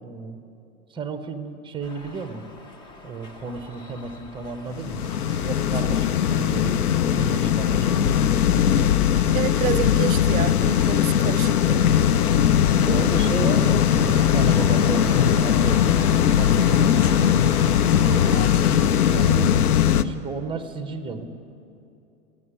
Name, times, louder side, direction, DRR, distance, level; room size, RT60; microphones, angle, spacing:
voice 1, 0.0-0.4 0.9-2.4 3.0-5.1 5.4-8.2 12.7-15.9 16.3-17.2 17.8-18.1 18.8-19.6 20.0-21.3, right 4 dB, 10° right, 0.7 m, -33 dB
sound 1, 1.8-18.5, left 2 dB, 10° left, 0.3 m, -40 dB
sound 2, 4.7-20.0, left 9 dB, 85° left, 0.6 m, -19 dB
voice 2, 9.3-11.8 18.1-18.4, right 13 dB, 70° right, 0.5 m, -29 dB
12.5 x 9.1 x 9.9 m
hypercardioid pair, 115°, 44 cm